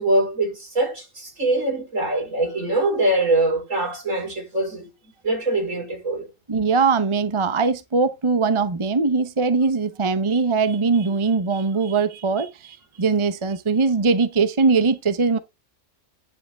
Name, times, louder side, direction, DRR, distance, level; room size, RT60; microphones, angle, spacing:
voice 1, 0.0-4.9 5.2-6.3, right 2 dB, 80° right, 4.9 m, -23 dB
voice 2, 6.5-15.4, right 4 dB, 25° right, 0.9 m, -21 dB
10.5 x 7.6 x 3.4 m
omnidirectional pair, 1.3 m